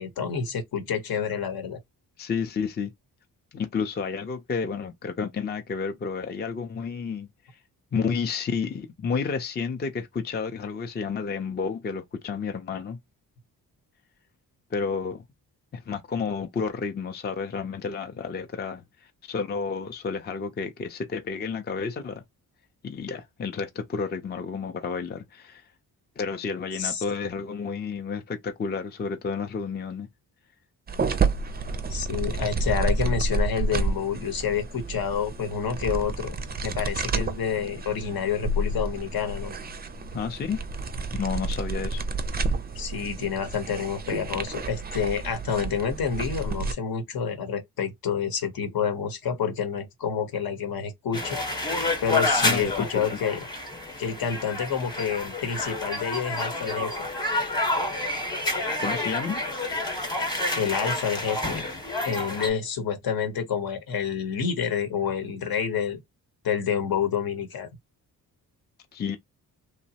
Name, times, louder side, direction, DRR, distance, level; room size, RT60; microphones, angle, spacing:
voice 1, 0.0-1.8 26.8-27.0 31.9-36.3 36.6-39.5 42.7-51.4 52.0-53.4 54.0-57.1 60.6-61.6 62.0-66.0 66.4-67.7, left 7 dB, 70° left, 1.0 m, -28 dB
voice 2, 2.2-2.9 3.5-7.3 7.9-13.0 14.7-15.3 15.7-22.2 22.8-25.7 26.2-30.1 40.1-40.6 41.1-42.1 52.4-52.9 58.8-59.4 68.9-69.2, left 5 dB, 25° left, 0.5 m, -31 dB
sound 1, 30.9-46.7, right 3 dB, 25° right, 0.4 m, -30 dB
sound 2, 51.1-62.5, left 2 dB, 10° left, 0.9 m, -29 dB
3.0 x 2.0 x 2.7 m
cardioid pair, 80°, 37 cm